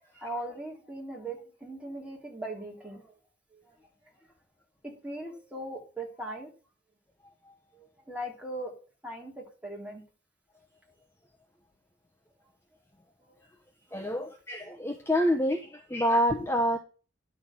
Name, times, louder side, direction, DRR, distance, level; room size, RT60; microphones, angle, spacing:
voice 1, 0.1-3.0 4.8-6.5 7.7-8.7 9.0-10.0 13.9-14.1, right 1 dB, 5° right, 3.5 m, -39 dB
voice 2, 13.9-16.8, equal, 15° left, 1.0 m, -27 dB
11.0 x 6.5 x 7.4 m
head